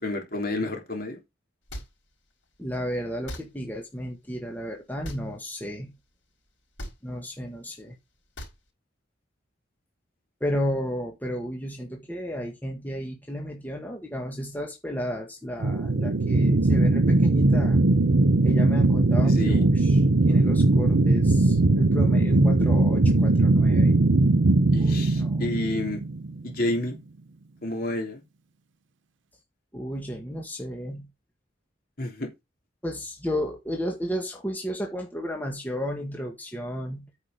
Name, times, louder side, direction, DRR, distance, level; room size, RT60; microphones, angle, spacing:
voice 1, 0.0-1.2 19.2-19.6 24.7-26.0 26.4-27.0 27.6-28.2 32.0-32.3, left 1 dB, 50° left, 3.3 m, -30 dB
sound 1, 1.7-1.9 3.3-3.4 5.0-5.2 6.8-7.0 8.4-8.6, equal, 80° left, 5.0 m, -37 dB
voice 2, 2.6-5.9 7.0-8.0 10.4-17.8 18.4-24.0 24.8-25.5 29.7-31.1 32.8-37.1, equal, 10° left, 1.8 m, -33 dB
sound 2, 15.6-26.5, right 2 dB, 85° right, 0.9 m, -20 dB
9.2 x 5.5 x 5.3 m
head